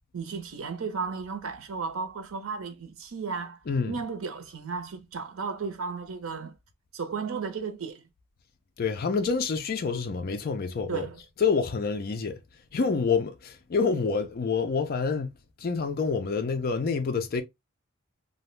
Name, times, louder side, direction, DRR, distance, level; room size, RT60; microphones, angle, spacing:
voice 1, 0.1-6.5 6.9-8.1 10.9-11.2, right 5 dB, 75° right, 0.6 m, -34 dB
voice 2, 3.7-4.0 8.8-11.1 11.4-12.4 12.7-15.3 15.6-17.4, left 5 dB, 45° left, 0.4 m, -27 dB
2.7 x 2.1 x 3.0 m
head